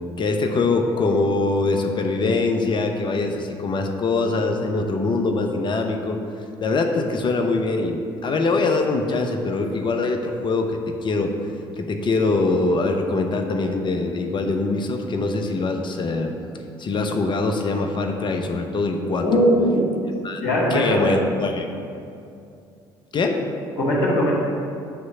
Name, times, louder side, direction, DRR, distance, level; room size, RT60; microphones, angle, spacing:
voice 1, 0.2-6.2 6.6-11.3 11.8-16.3 16.8-19.3 20.2-20.4 20.7-21.6 23.1-23.4, left 3 dB, 40° left, 4 dB, 0.8 m, -23 dB
voice 2, 19.2-19.9 20.4-21.1 23.8-24.3, equal, 75° left, -5 dB, 1.7 m, -19 dB
8.0 x 3.2 x 5.9 m, 2.5 s
hypercardioid pair, 55°, 13 cm